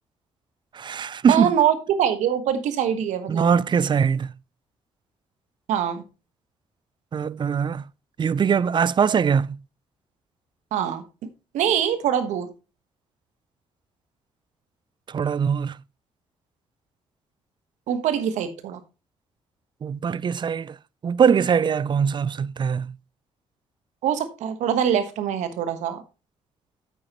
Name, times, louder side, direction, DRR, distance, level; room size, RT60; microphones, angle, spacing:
voice 1, 0.7-1.5 3.3-4.3 7.1-7.8 8.2-9.6 15.1-15.8 19.8-20.8 21.0-23.0, right 7 dB, 40° right, 0.4 m, -22 dB
voice 2, 1.3-3.5 5.7-6.0 10.7-11.0 11.5-12.5 17.9-18.8 24.0-26.0, right 9 dB, 75° right, 1.3 m, -24 dB
8.9 x 8.9 x 3.0 m
supercardioid pair, 60°, 12 cm